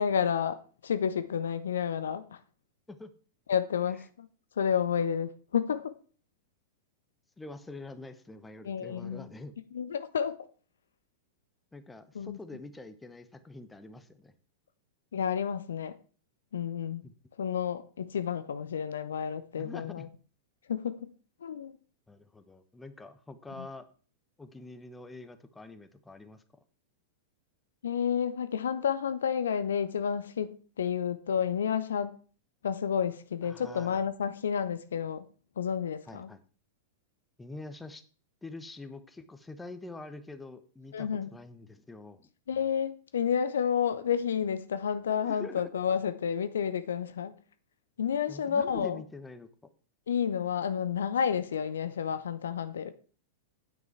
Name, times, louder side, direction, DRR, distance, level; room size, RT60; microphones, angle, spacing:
voice 1, 0.0-2.4 3.5-4.3 4.6-5.9 8.6-9.3 9.7-10.3 12.1-12.4 15.1-15.9 16.5-17.0 17.4-20.1 20.7-21.0 21.4-21.7 23.6-23.7 27.8-32.2 32.6-35.2 35.6-36.3 40.9-41.3 42.5-47.3 48.0-49.0 50.1-52.9, left 7 dB, 65° left, 0.8 m, -30 dB
voice 2, 7.4-9.6 11.7-14.3 17.0-17.1 19.6-20.1 22.1-23.8 24.4-26.4 33.4-34.0 36.1-36.4 37.4-38.0 38.4-42.3 45.2-45.7 48.3-49.5, left 2 dB, 10° left, 1.1 m, -45 dB
9.5 x 8.7 x 4.6 m
figure-of-eight pair, 95°, 0 cm